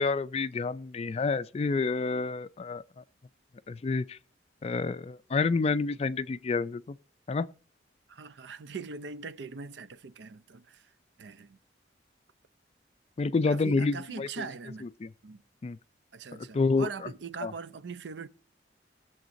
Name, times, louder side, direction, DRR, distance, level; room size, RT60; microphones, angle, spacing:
voice 1, 0.0-2.8 3.7-4.2 4.6-7.0 7.3-7.5 13.2-14.5 15.0-15.1 15.6-15.8 16.5-16.9 17.4-17.5, left 4 dB, 35° left, 0.3 m, -28 dB
voice 2, 8.1-10.9 11.2-11.6 13.5-14.9 15.2-15.4 16.1-18.3, right 5 dB, 70° right, 0.5 m, -41 dB
20.0 x 7.1 x 2.6 m
head